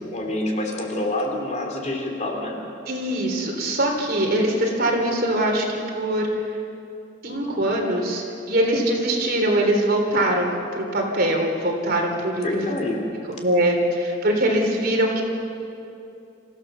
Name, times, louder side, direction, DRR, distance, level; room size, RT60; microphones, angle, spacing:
voice 1, 0.1-2.6 12.4-13.0, left 1 dB, 40° left, 1 dB, 3.2 m, -27 dB
voice 2, 2.9-6.5 7.2-12.5 12.9-13.0 13.4-15.2, right 1 dB, 55° right, 1 dB, 3.4 m, -22 dB
26.5 x 15.5 x 6.9 m, 2.7 s
head